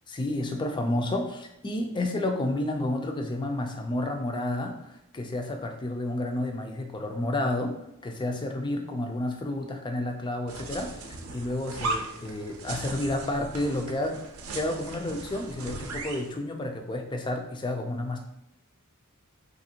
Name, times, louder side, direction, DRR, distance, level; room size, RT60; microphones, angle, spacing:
voice 1, 0.1-7.8 8.0-10.9 11.3-14.2 14.5-18.2, left 1 dB, 20° left, 4 dB, 0.3 m, -30 dB
sound 1, 10.5-16.3, right 2 dB, 80° right, 0.5 m, -37 dB
3.4 x 2.5 x 2.7 m, 0.82 s
head